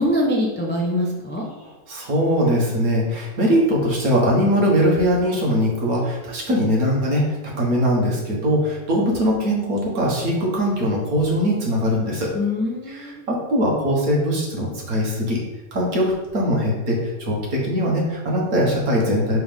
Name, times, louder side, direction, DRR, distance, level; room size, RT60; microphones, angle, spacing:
voice 1, 0.0-1.5 12.3-13.2, left 1 dB, 10° left, -2 dB, 0.5 m, -23 dB
voice 2, 1.6-12.3 12.9-15.4 15.7-19.4, equal, 55° right, -3 dB, 1.9 m, -21 dB
5.6 x 4.3 x 5.2 m, 1.1 s
omnidirectional pair, 1.9 m